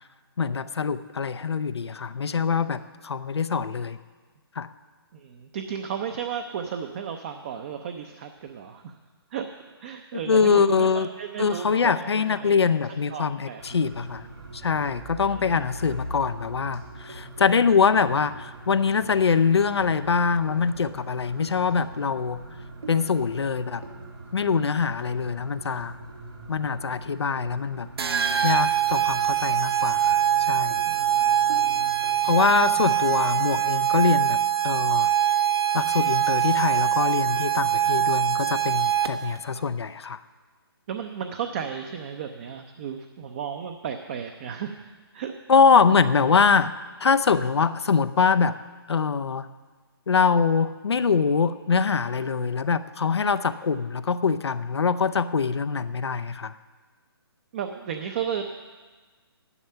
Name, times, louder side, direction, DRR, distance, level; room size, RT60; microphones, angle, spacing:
voice 1, 0.4-4.0 4.6-4.7 10.3-11.1 11.4-14.3 14.5-22.4 22.9-23.8 24.3-26.0 26.5-27.9 28.4-30.8 32.2-34.4 34.6-35.1 35.7-40.2 45.5-46.7 47.0-48.6 48.9-49.5 50.1-56.5, left 5 dB, 85° left, 13 dB, 0.6 m, -23 dB
voice 2, 5.1-8.9 9.3-9.5 9.8-12.6 12.9-13.6 15.2-15.6 30.9-31.9 32.2-32.4 40.9-44.7 45.1-45.3 57.5-58.4, right 8 dB, 30° right, 6 dB, 0.6 m, -34 dB
sound 1, 13.6-32.1, right 2 dB, 90° right, 2.8 m, -42 dB
sound 2, 28.0-39.4, right 10 dB, 70° right, 0.9 m, -23 dB
11.5 x 11.0 x 5.6 m, 1.4 s
hypercardioid pair, 155°, 13 cm